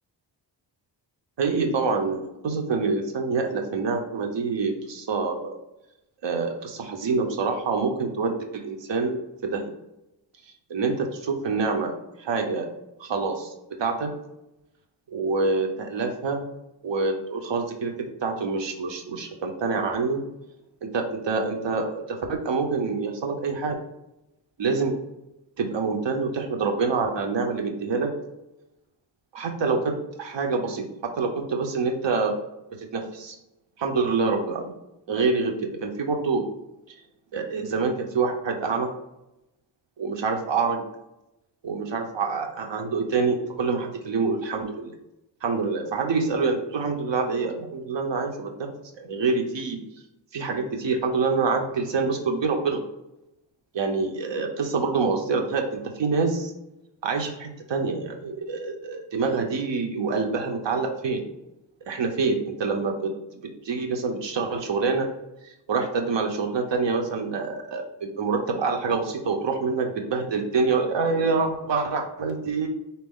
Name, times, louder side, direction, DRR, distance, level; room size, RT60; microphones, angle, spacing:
voice 1, 1.4-5.6 6.2-9.7 10.7-11.9 12.2-12.7 13.0-13.5 13.8-14.1 15.1-16.4 16.8-20.2 20.9-23.8 24.6-24.9 25.6-28.1 29.3-32.3 32.9-33.3 33.8-34.7 35.1-36.4 37.3-38.9 40.0-40.8 41.6-44.9 45.4-48.7 49.0-49.8 50.3-52.8 53.7-56.5 57.0-61.2 61.9-63.1 63.6-65.1 65.4-72.7, right 4 dB, 85° right, 3 dB, 0.9 m, -26 dB
4.2 x 2.9 x 3.6 m, 0.88 s
wide cardioid pair, 125°, 43 cm